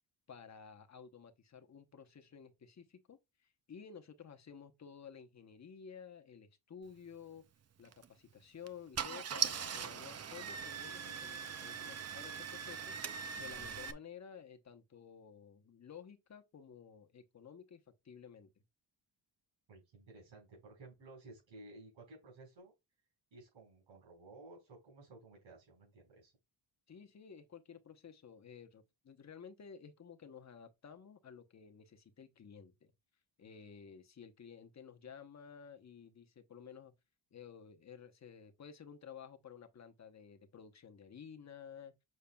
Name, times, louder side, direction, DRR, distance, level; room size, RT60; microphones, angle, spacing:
voice 1, 0.3-7.4 7.8-18.5 26.9-32.9 33.4-36.9 37.3-41.9, left 7 dB, 35° left, 0.9 m, -53 dB
Car / Engine starting, 7.8-8.1 8.7-8.8 8.9-13.9, right 7 dB, 35° right, 0.6 m, -40 dB
voice 2, 19.7-22.7 23.3-26.3, right 2 dB, 80° right, 4.5 m, -56 dB
6.9 x 6.3 x 2.3 m
wide cardioid pair, 140°, 45 cm